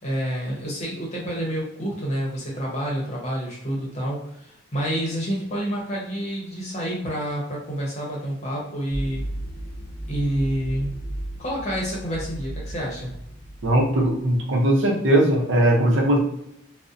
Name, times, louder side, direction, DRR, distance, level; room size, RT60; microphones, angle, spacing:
voice 1, 0.0-9.2 10.1-10.9 11.4-13.2, equal, 35° left, -3 dB, 0.8 m, -28 dB
sound 1, 8.9-14.1, right 1 dB, 85° left, 0.7 m, -35 dB
voice 2, 13.6-16.2, right 1 dB, 70° right, 0 dB, 0.6 m, -19 dB
2.6 x 2.0 x 2.4 m, 0.76 s
head